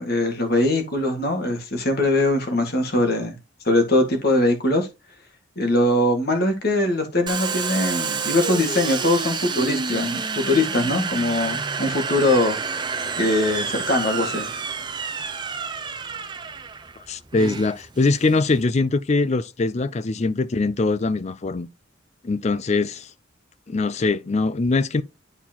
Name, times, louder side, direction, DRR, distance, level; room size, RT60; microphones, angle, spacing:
voice 1, 0.0-3.4 3.6-4.9 5.6-12.6 13.2-14.5, left 1 dB, 55° left, 1.8 m, -21 dB
Domestic sounds home sounds, 7.3-18.6, right 5 dB, 25° right, 0.7 m, -29 dB
voice 2, 17.1-21.7 22.2-23.1 23.7-25.0, left 3 dB, 35° left, 0.4 m, -22 dB
11.0 x 4.3 x 2.9 m
head